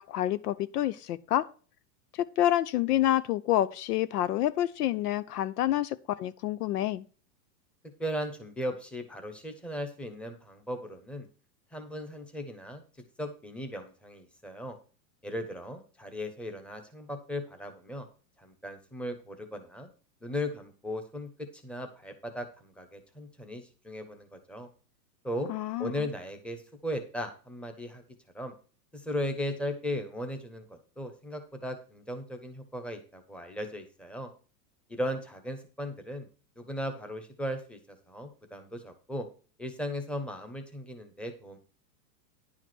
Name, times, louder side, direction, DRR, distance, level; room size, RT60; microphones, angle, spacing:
voice 1, 0.0-1.5 2.1-7.0 25.5-26.1, left 13 dB, 65° left, 0.8 m, -28 dB
voice 2, 8.0-11.3 11.7-12.8 13.2-14.7 15.2-18.0 18.4-19.9 20.2-24.7 25.2-25.5 25.8-28.0 28.3-28.5 28.9-34.3 34.9-36.3 36.6-39.3 39.6-41.6, left 1 dB, ahead, 1.1 m, -37 dB
10.5 x 4.9 x 6.1 m
supercardioid pair, 150°, 49 cm